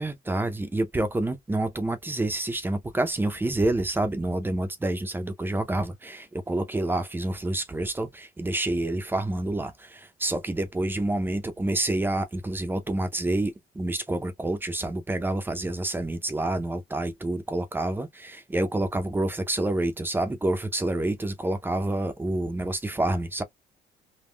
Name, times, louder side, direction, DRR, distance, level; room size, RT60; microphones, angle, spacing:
voice 1, 0.0-23.4, right 1 dB, 10° right, 0.6 m, -28 dB
3.6 x 2.1 x 2.2 m
cardioid pair, 110°, 17 cm